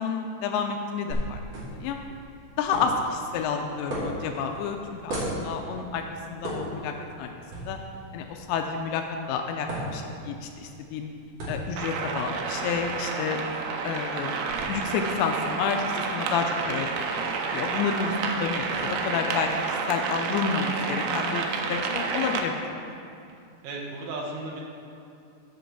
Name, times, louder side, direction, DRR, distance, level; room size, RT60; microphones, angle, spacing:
voice 1, 0.0-1.4 1.7-2.0 2.6-6.0 6.3-7.3 7.5-7.8 8.1-11.1 11.5-13.4 13.8-17.1 17.5-18.1 18.4-22.5, left 6 dB, 85° left, 4 dB, 2.8 m, -30 dB
sound 1, 1.1-18.8, right 1 dB, 45° right, 2.8 m, -39 dB
sound 2, 11.8-22.4, right 5 dB, 90° right, 3.0 m, -30 dB
voice 2, 23.6-24.6, right 2 dB, 70° right, -2 dB, 2.1 m, -34 dB
7.8 x 6.3 x 6.8 m, 2.6 s
omnidirectional pair, 5.0 m